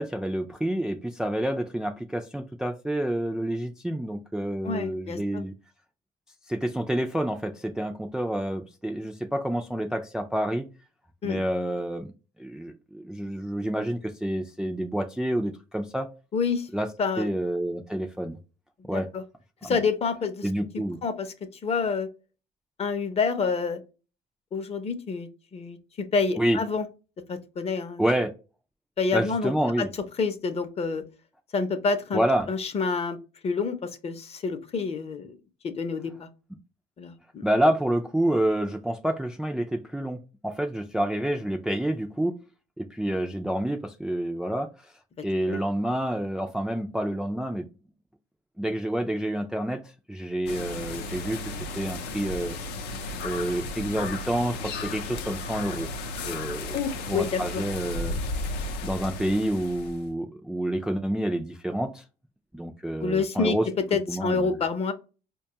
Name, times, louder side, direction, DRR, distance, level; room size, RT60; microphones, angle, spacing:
voice 1, 0.0-5.5 6.5-10.7 11.2-12.1 12.4-16.1 16.7-16.9 17.2-18.4 18.9-19.1 19.6-19.8 20.4-21.0 26.4-26.6 28.0-28.3 29.1-29.9 32.1-32.5 37.4-42.4 42.8-44.9 45.2-47.7 48.6-52.6 53.2-55.9 56.2-56.8 57.1-58.2 58.8-62.0 62.5-63.7 64.1-64.5, right 1 dB, 5° right, 0.3 m, -28 dB
voice 2, 4.6-5.4 11.2-11.4 16.3-16.7 17.0-17.3 18.9-19.2 19.6-20.5 20.7-21.3 21.6-22.1 22.8-23.8 24.5-26.9 27.3-28.0 29.0-29.5 29.8-29.9 30.2-31.0 31.5-32.2 32.5-33.2 33.4-35.3 35.6-36.3 37.0-37.4 45.5-45.6 56.7-57.6 58.1-58.2 63.0-64.9, left 4 dB, 35° left, 0.6 m, -28 dB
sound 1, 50.5-60.1, left 2 dB, 85° left, 0.6 m, -34 dB
4.6 x 2.2 x 2.8 m
cardioid pair, 110°, 17 cm